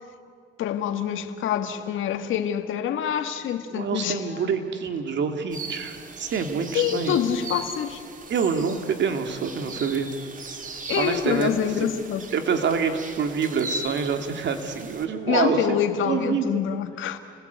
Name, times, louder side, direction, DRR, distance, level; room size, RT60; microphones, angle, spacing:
voice 1, 0.6-4.4 6.7-8.0 10.9-12.3 15.3-17.2, left 9 dB, 80° left, 8 dB, 1.9 m, -26 dB
voice 2, 3.7-7.2 8.3-10.1 11.0-11.6 12.3-15.6 16.1-16.6, right 6 dB, 65° right, 6 dB, 2.7 m, -26 dB
sound 1, 5.5-15.1, right 3 dB, 40° right, 2.5 m, -38 dB
30.0 x 21.0 x 8.3 m, 2.1 s
cardioid pair, 90°, 20 cm